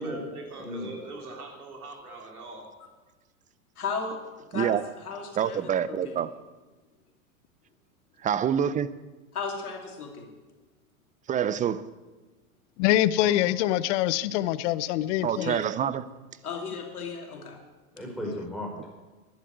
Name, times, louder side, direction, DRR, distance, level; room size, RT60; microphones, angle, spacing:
voice 1, 0.0-2.7, right 3 dB, 85° right, 3.7 m, -42 dB
voice 2, 0.6-1.0 13.2-13.3 17.9-18.9, equal, ahead, 5.4 m, -35 dB
voice 3, 3.8-4.2 4.5-5.6 5.9-6.2 9.3-10.3 15.3-15.7 16.4-17.6, left 5 dB, 85° left, 2.8 m, -35 dB
voice 4, 5.4-6.3 8.2-8.9 11.3-11.8 15.2-16.0, right 9 dB, 20° right, 0.5 m, -26 dB
voice 5, 12.8-15.6, left 13 dB, 55° left, 0.7 m, -24 dB
11.5 x 11.0 x 7.9 m
hypercardioid pair, 105°, 43 cm